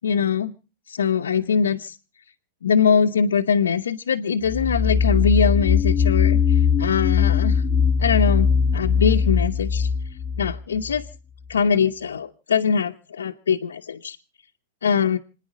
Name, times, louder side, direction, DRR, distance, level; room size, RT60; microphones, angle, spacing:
voice 1, 0.0-0.5 0.9-1.9 2.6-7.6 8.0-9.9 10.4-11.0 11.5-14.2 14.8-15.2, left 6 dB, 85° left, 2 dB, 0.8 m, -22 dB
sound 1, 4.4-11.1, left 6 dB, 20° left, 1.2 m, -20 dB
27.0 x 10.0 x 5.0 m, 0.36 s
hypercardioid pair, 120°, 0 cm